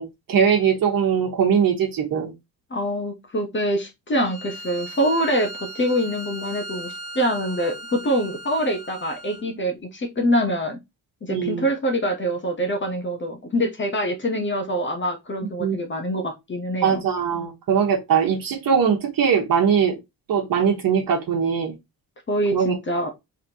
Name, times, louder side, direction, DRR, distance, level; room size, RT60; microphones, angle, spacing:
voice 1, 0.0-2.3 11.3-11.7 15.6-15.8 16.8-20.0 20.3-21.7 22.5-22.7, right 7 dB, 65° right, 1.4 m, -21 dB
voice 2, 2.7-10.8 11.2-17.0 22.3-23.1, equal, 30° left, 1.1 m, -25 dB
Bowed string instrument, 4.1-9.5, right 1 dB, 10° right, 1.6 m, -38 dB
4.2 x 3.5 x 2.8 m
cardioid pair, 110°, 37 cm